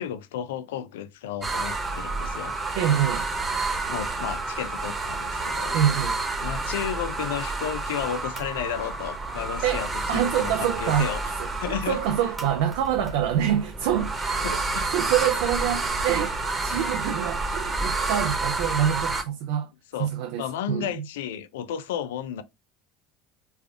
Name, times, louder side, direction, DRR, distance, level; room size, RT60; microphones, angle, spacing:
voice 1, 0.0-2.6 3.9-5.8 6.4-11.2 11.6-12.0 14.4-14.9 19.9-20.1 20.4-22.4, left 9 dB, 80° left, 0.4 m, -33 dB
sound 1, 1.4-19.2, right 3 dB, 25° right, 1.0 m, -29 dB
voice 2, 2.8-3.3 5.7-6.2 9.6-14.2 14.9-19.7 20.0-21.1, right 10 dB, 70° right, 0.4 m, -26 dB
3.4 x 2.3 x 3.5 m
hypercardioid pair, 85°, 0 cm